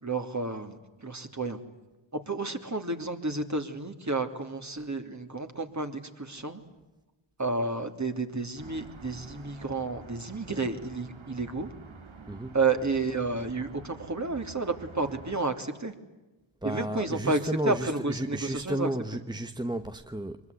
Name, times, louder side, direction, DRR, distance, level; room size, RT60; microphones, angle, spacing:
voice 1, 0.0-1.6 2.3-6.6 7.4-11.7 12.5-15.9 16.6-17.4 17.6-18.9, right 3 dB, 35° right, 3.0 m, -31 dB
sound 1, 8.6-15.4, right 4 dB, 65° right, 2.4 m, -48 dB
voice 2, 16.6-20.5, right 1 dB, 10° right, 1.0 m, -33 dB
24.5 x 22.0 x 9.8 m
cardioid pair, 50°, 50 cm